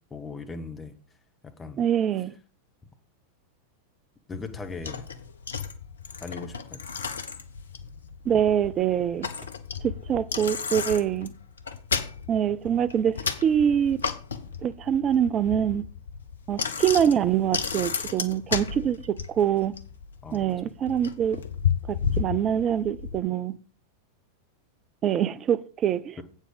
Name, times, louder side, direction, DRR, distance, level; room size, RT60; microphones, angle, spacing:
voice 1, 0.1-0.9 1.4-1.8 4.3-5.1 6.2-6.8 20.2-20.6 26.2-26.3, left 4 dB, 15° left, 1.3 m, -38 dB
voice 2, 1.8-2.3 8.3-9.3 9.8-11.3 12.3-14.0 14.6-15.9 16.5-19.8 20.3-21.4 21.9-23.5 25.0-26.2, right 9 dB, 30° right, 0.5 m, -24 dB
Bicycle, 4.3-23.2, left 6 dB, 70° left, 0.8 m, -33 dB
8.4 x 7.3 x 5.2 m
figure-of-eight pair, 90°, 0 cm